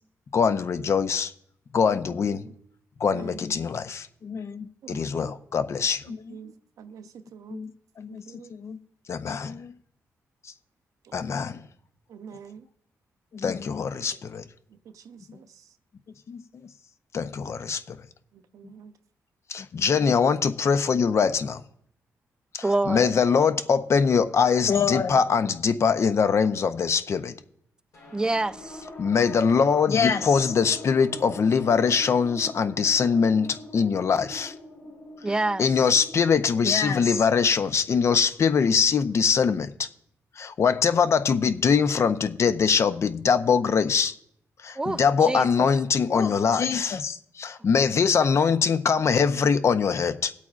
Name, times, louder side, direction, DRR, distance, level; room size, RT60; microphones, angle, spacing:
voice 1, 0.3-1.3 1.7-2.4 3.0-6.4 7.5-7.7 8.0-8.2 8.5-8.8 9.1-9.7 11.1-11.6 13.3-14.4 16.3-16.4 17.1-18.0 19.5-21.6 22.5-27.3 29.0-34.5 35.6-39.9 40.4-44.1 44.6-50.3, left 6 dB, 55° left, 0.6 m, -23 dB
voice 2, 2.0-2.5 3.0-3.4 4.8-5.3 6.3-7.6 8.1-8.5 9.3-9.4 11.0-11.2 12.1-12.6 14.1-14.2 14.9-15.6 17.4-17.5 18.3-18.9, right 7 dB, 80° right, 0.7 m, -45 dB
voice 3, 22.6-23.2 28.1-28.8 35.2-35.7 44.8-45.7, right 2 dB, 15° right, 0.4 m, -27 dB
sound 1, 27.9-38.6, left 1 dB, 75° left, 4.3 m, -44 dB
20.5 x 8.3 x 2.4 m
cardioid pair, 95°, 6 cm